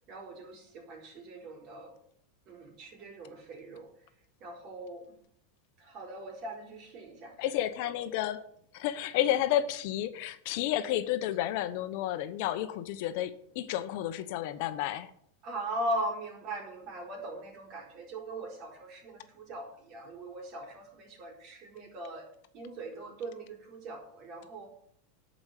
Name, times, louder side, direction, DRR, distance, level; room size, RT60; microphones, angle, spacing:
voice 1, 0.1-1.9 2.5-3.9 4.4-5.1 5.8-7.9 15.4-22.3 22.5-24.7, right 1 dB, 45° right, 2 dB, 4.3 m, -40 dB
voice 2, 7.4-8.4 8.7-15.1, left 12 dB, 60° left, 12 dB, 0.9 m, -31 dB
10.5 x 5.3 x 8.4 m, 0.67 s
supercardioid pair, 120°, 0 cm